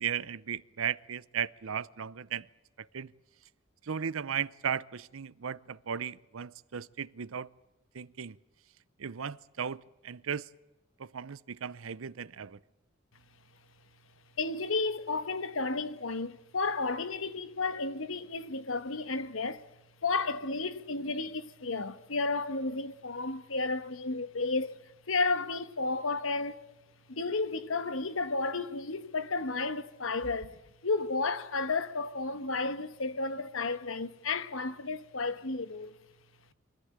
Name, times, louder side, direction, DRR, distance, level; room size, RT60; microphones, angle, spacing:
voice 1, 0.0-2.5 2.8-3.1 3.8-7.5 7.9-8.4 9.0-10.5 11.0-12.6, right 7 dB, 85° right, 0.6 m, -36 dB
voice 2, 14.4-19.7 20.0-24.8 25.1-26.7 27.1-30.5 30.8-35.9, left 3 dB, 75° left, 1.3 m, -32 dB
24.0 x 15.0 x 8.8 m
head